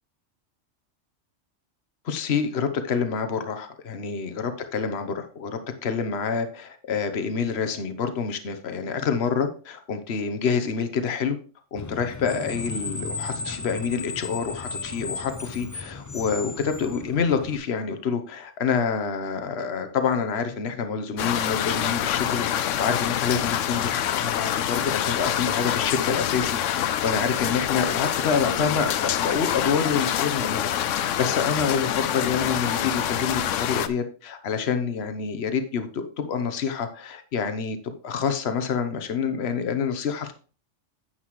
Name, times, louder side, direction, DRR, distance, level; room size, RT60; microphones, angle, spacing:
voice 1, 2.0-11.4 11.7-40.3, left 6 dB, 60° left, 8 dB, 1.2 m, -27 dB
Screech, 11.8-17.6, left 3 dB, 30° left, 0.3 m, -35 dB
sound 1, 21.2-33.9, left 10 dB, 80° left, 1.0 m, -26 dB
9.8 x 8.0 x 3.1 m, 0.38 s
omnidirectional pair, 1.3 m